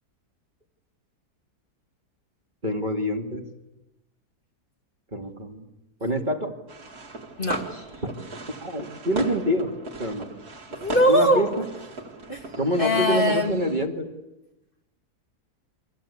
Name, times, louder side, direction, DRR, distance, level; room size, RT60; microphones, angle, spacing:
voice 1, 2.6-3.4 5.1-5.7 6.0-6.5 8.0-8.1 8.6-9.7 10.0-10.3 11.1-11.6 12.6-14.1, equal, 30° right, 2 dB, 2.3 m, -26 dB
sound 1, 6.7-13.9, right 2 dB, 65° right, 2.7 m, -38 dB
voice 2, 7.4-7.8 10.7-11.5 12.3-12.4 12.8-13.6, equal, 30° left, 3 dB, 2.4 m, -21 dB
29.5 x 23.5 x 8.5 m, 0.94 s
omnidirectional pair, 1.7 m